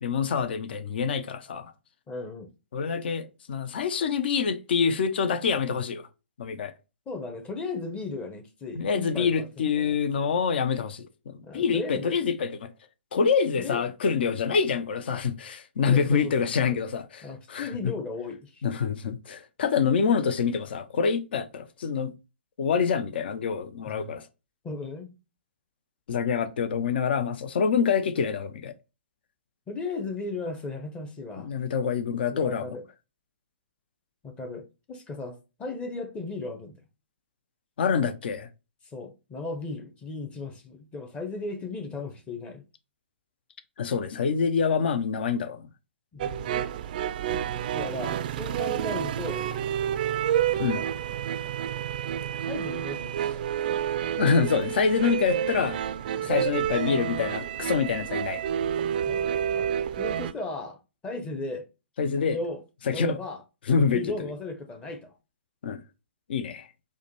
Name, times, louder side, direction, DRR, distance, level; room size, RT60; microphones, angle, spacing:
voice 1, 0.0-1.7 2.7-6.1 6.4-6.7 8.8-12.7 13.1-17.9 18.6-22.1 22.6-24.3 26.1-28.7 31.4-32.8 37.8-38.5 43.8-45.7 50.6-50.8 54.2-55.8 56.2-58.4 62.0-62.4 62.8-63.2 63.7-64.3 65.6-65.8 66.3-66.7, left 6 dB, 55° left, 0.5 m, -26 dB
voice 2, 2.1-2.5 7.1-10.0 11.4-12.2 13.6-13.8 15.9-16.3 16.7-16.8 17.2-18.6 23.9-24.1 24.6-25.1 29.7-31.5 32.3-32.8 34.2-36.8 38.9-42.6 46.1-46.5 47.7-49.4 50.5-50.9 52.2-53.4 54.1-54.2 56.1-56.4 59.1-60.8 61.0-61.7 62.3-62.6 62.9-63.4 63.9-65.1, left 3 dB, 15° left, 0.7 m, -36 dB
sound 1, 46.2-60.3, right 10 dB, 45° right, 0.3 m, -29 dB
4.7 x 2.2 x 2.9 m
figure-of-eight pair, 130°, 6 cm